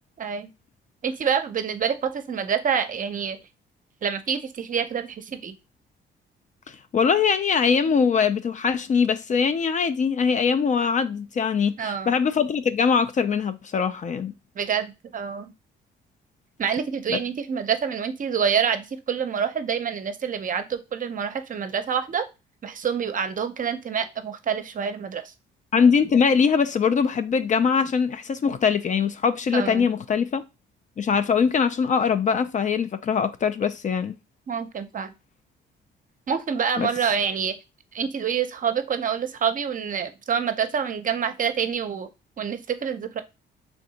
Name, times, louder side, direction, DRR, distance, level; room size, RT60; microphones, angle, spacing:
voice 1, 0.2-0.5 1.0-3.4 4.0-5.6 11.8-12.1 14.6-15.5 16.6-22.3 22.6-25.3 29.5-29.9 34.5-35.1 36.3-37.6 37.9-42.1 42.4-43.2, right 7 dB, 40° right, 0.6 m, -27 dB
voice 2, 6.7-14.3 17.1-17.2 25.7-30.4 31.0-34.1 36.8-36.9, left 6 dB, 40° left, 0.4 m, -22 dB
3.4 x 2.7 x 3.9 m
cardioid pair, 90°, 20 cm